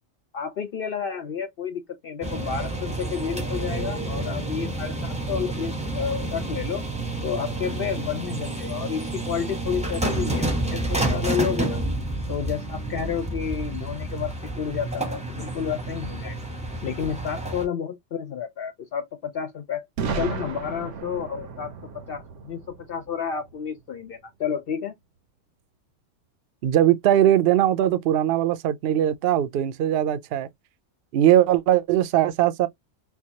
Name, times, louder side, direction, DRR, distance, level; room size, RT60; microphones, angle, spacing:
voice 1, 0.3-6.8 7.2-11.8 12.3-16.4 16.8-19.9 20.2-21.7 22.1-22.6 22.9-24.9, left 7 dB, 60° left, 0.8 m, -30 dB
sound 1, 2.2-17.7, right 2 dB, 5° right, 0.8 m, -29 dB
Boom, 20.0-23.8, right 5 dB, 85° right, 1.0 m, -34 dB
voice 2, 26.6-30.5 31.1-32.7, right 11 dB, 65° right, 0.7 m, -20 dB
4.5 x 2.3 x 2.8 m
omnidirectional pair, 1.2 m